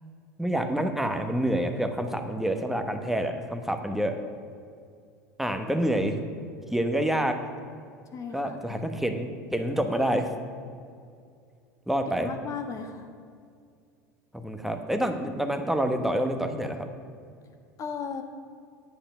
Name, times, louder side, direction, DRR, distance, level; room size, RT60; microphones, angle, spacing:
voice 1, 0.4-4.2 5.4-6.2 6.7-7.4 8.3-10.3 11.9-12.3 14.3-16.9, right 1 dB, 5° right, 6 dB, 1.2 m, -27 dB
voice 2, 8.1-9.0 12.1-13.1 17.8-18.2, left 6 dB, 40° left, 5 dB, 1.4 m, -36 dB
10.0 x 8.9 x 5.5 m, 2.3 s
hypercardioid pair, 80°, 9 cm